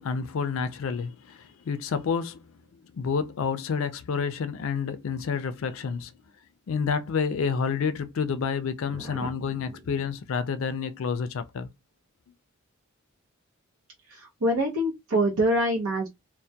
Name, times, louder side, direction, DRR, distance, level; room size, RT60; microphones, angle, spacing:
voice 1, 0.0-6.1 6.7-11.7, left 6 dB, 65° left, 0.4 m, -29 dB
voice 2, 8.9-9.3 14.1-16.1, right 1 dB, 90° right, 0.6 m, -25 dB
2.2 x 2.1 x 2.7 m
head